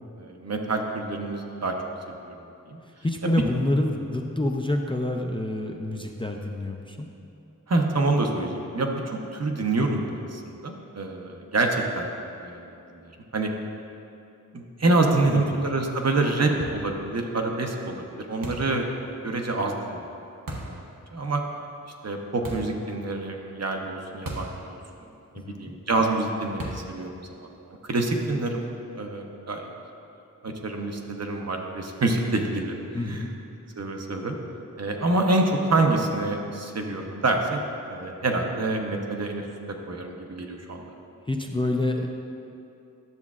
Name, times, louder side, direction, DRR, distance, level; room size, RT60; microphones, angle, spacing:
voice 1, 0.2-1.8 2.2-2.4 2.7-2.8 3.2-3.4 7.7-12.6 12.9-13.5 14.5-18.9 19.2-20.0 20.5-20.8 21.1-21.4 22.0-24.8 25.3-28.7 28.9-29.7 30.4-32.8 33.0-33.3 33.8-34.4 34.8-37.6 37.9-40.9, right 2 dB, 50° right, 2 dB, 0.7 m, -27 dB
voice 2, 2.8-7.1 15.3-15.4 25.4-25.7 32.9-33.3 41.3-42.1, left 1 dB, 15° left, 2 dB, 0.4 m, -27 dB
sound 1, 18.4-18.8 20.5-20.8 22.4-22.8 24.3-24.6 24.9-25.0 26.6-27.0, right 1 dB, 80° right, 1.0 m, -35 dB
10.5 x 7.0 x 2.4 m, 2.7 s
wide cardioid pair, 80°, 33 cm